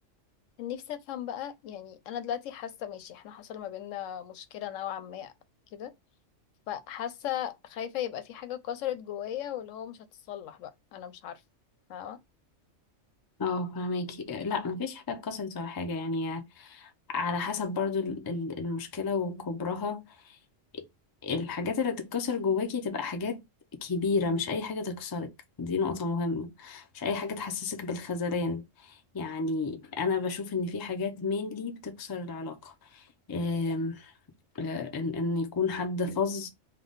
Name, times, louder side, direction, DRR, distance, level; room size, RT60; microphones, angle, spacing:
voice 1, 0.6-5.3 5.7-5.9 6.7-11.4 11.9-12.2, left 10 dB, 85° left, 1.0 m, -37 dB
voice 2, 13.4-20.4 21.2-23.4 23.8-25.3 25.6-34.1 34.5-36.5, left 4 dB, 35° left, 0.3 m, -31 dB
3.9 x 2.3 x 3.5 m
omnidirectional pair, 1.3 m